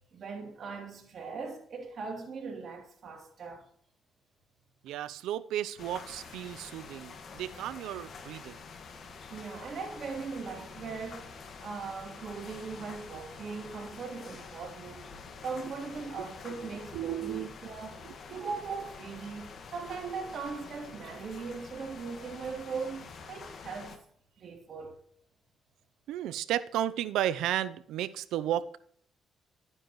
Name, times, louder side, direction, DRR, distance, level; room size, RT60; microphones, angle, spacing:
voice 1, 0.1-3.6 9.3-15.1 15.4-18.0 18.3-24.0 24.4-25.0, right 5 dB, 55° right, 2.9 m, -39 dB
voice 2, 4.8-8.6 16.2-16.3 16.9-17.5 18.3-18.5 26.1-28.8, right 12 dB, 90° right, 0.5 m, -33 dB
sound 1, 5.8-24.0, left 5 dB, 60° left, 1.5 m, -47 dB
12.0 x 9.8 x 3.1 m
cardioid pair, 90°, 0 cm